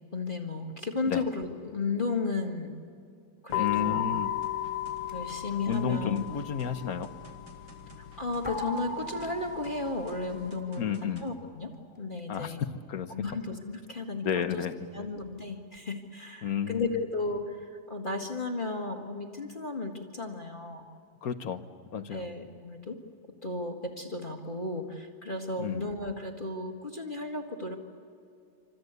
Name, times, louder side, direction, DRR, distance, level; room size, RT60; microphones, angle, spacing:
voice 1, 0.1-2.8 3.4-4.0 5.1-6.2 8.0-11.7 12.0-12.6 13.1-14.3 14.5-14.6 14.9-20.8 22.1-23.0 23.4-27.8, left 3 dB, 25° left, 2 dB, 1.8 m, -34 dB
sound 1, 3.5-10.5, left 18 dB, 75° left, 1.5 m, -36 dB
voice 2, 3.6-4.3 5.7-7.1 10.8-11.2 12.3-12.5 12.9-13.1 14.2-15.1 16.4-16.9 21.2-21.6 21.9-22.3 25.6-25.9, left 7 dB, 55° left, 10 dB, 1.4 m, -32 dB
sound 2, 3.9-6.8 8.4-11.3, equal, 5° right, 3.6 m, -41 dB
sound 3, 4.4-11.4, right 3 dB, 45° right, 2.6 m, -55 dB
27.0 x 26.0 x 8.2 m, 2.5 s
omnidirectional pair, 2.1 m